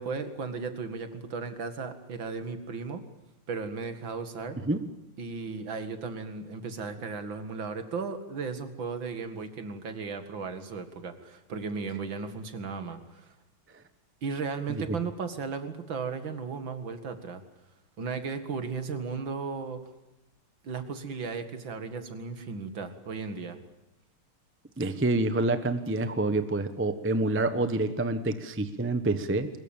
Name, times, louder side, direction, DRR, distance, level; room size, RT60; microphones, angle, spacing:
voice 1, 0.0-3.0 3.5-4.6 5.2-13.3 14.2-17.4 18.0-19.8 20.6-23.6, right 5 dB, 65° right, 9 dB, 2.7 m, -35 dB
voice 2, 24.8-29.5, right 2 dB, 10° right, 10 dB, 0.8 m, -27 dB
22.5 x 21.0 x 8.9 m, 0.93 s
omnidirectional pair, 2.3 m